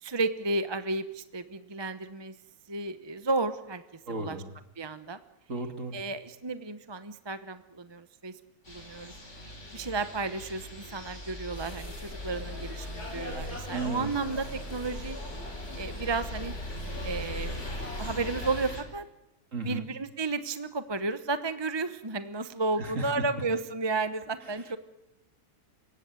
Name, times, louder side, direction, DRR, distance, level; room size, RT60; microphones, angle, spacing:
voice 1, 0.0-2.3 2.7-3.8 4.1-4.4 4.8-5.2 5.9-8.3 8.7-9.1 9.4-15.2 15.8-16.5 17.0-17.6 18.0-19.1 19.6-24.8, right 3 dB, 20° right, 11 dB, 0.8 m, -33 dB
voice 2, 4.1-4.5 5.5-6.0 13.7-14.1 19.5-19.8 22.8-23.1, right 3 dB, 50° right, 6 dB, 2.8 m, -34 dB
sound 1, 8.6-18.8, left 1 dB, 45° left, 5.0 m, -39 dB
sound 2, 11.5-18.7, left 1 dB, 75° left, 7.0 m, -44 dB
29.0 x 17.0 x 9.2 m, 0.90 s
omnidirectional pair, 1.7 m